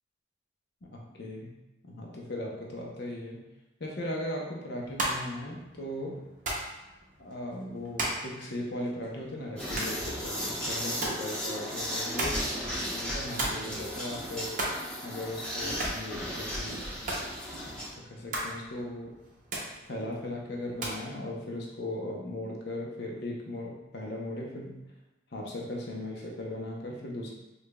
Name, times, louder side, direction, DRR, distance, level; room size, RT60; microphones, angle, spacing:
voice 1, 0.8-1.5 1.9-3.4 3.8-6.2 7.2-12.3 12.9-14.5 15.0-16.9 17.5-19.1 19.9-24.8 25.3-27.3, left 1 dB, 55° left, -1 dB, 0.7 m, -38 dB
sound 1, 4.8-21.0, right 1 dB, 40° right, 0.6 m, -39 dB
sound 2, 9.6-17.9, equal, 5° left, 1.1 m, -35 dB
4.8 x 2.5 x 2.2 m, 0.98 s
head